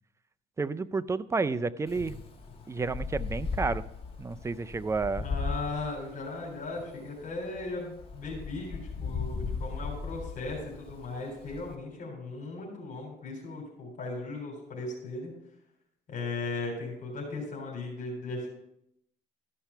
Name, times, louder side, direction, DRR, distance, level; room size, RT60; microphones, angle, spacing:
voice 1, 0.6-2.2 2.7-3.8 4.2-5.3, right 4 dB, 15° right, 13 dB, 0.4 m, -30 dB
Wind, 1.9-11.7, left 4 dB, 35° left, 2.3 m, -37 dB
voice 2, 5.2-15.3 16.1-18.5, left 3 dB, 50° left, 0 dB, 3.7 m, -37 dB
13.5 x 5.9 x 5.6 m, 0.78 s
cardioid pair, 110°, 17 cm